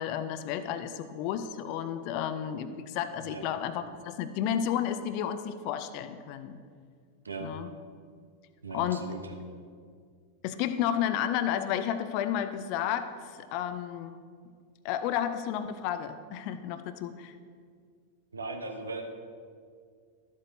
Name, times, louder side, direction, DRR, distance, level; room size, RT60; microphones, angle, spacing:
voice 1, 0.0-6.6 7.4-7.7 8.7-9.1 10.4-14.2 14.8-17.3, left 9 dB, 45° left, 11 dB, 0.5 m, -32 dB
voice 2, 8.6-9.4 18.3-19.1, right 3 dB, 75° right, 4 dB, 0.9 m, -38 dB
12.5 x 8.2 x 2.7 m, 2.1 s
figure-of-eight pair, 90°, 0 cm